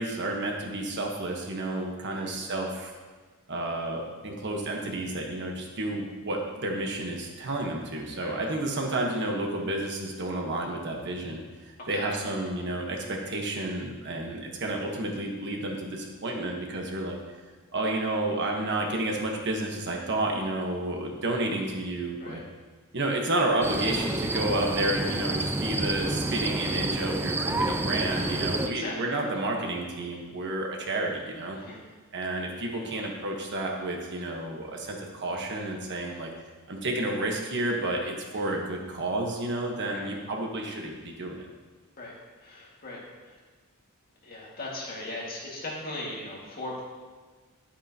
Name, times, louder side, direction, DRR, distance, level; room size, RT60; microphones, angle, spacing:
voice 1, 0.0-2.9 3.5-17.2 17.7-22.4 22.9-31.6 32.1-36.3 36.7-41.4, right 2 dB, 55° right, 0 dB, 1.3 m, -31 dB
voice 2, 2.1-2.4 8.2-8.4 11.8-12.1 22.2-22.4 28.1-29.2 31.5-31.8 39.9-40.1 42.0-42.1 42.4-43.4 44.2-46.8, left 2 dB, 45° left, -4 dB, 2.1 m, -39 dB
sound 1, 23.6-28.7, right 2 dB, 10° right, 0.3 m, -29 dB
10.5 x 8.6 x 2.9 m, 1.4 s
head